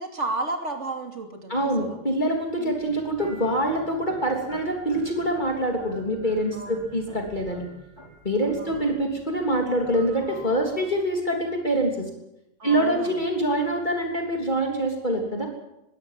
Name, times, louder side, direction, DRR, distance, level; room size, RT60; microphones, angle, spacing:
voice 1, 0.0-2.0 2.6-3.0 6.5-6.9 8.6-9.1 12.6-13.2, right 2 dB, 60° right, 4 dB, 3.2 m, -33 dB
voice 2, 1.5-7.7 8.2-12.1 12.6-15.5, right 1 dB, 35° left, 1 dB, 3.4 m, -25 dB
sound 1, 2.8-10.9, equal, 20° left, 5.4 m, -47 dB
21.5 x 16.5 x 7.6 m, 0.87 s
omnidirectional pair, 1.4 m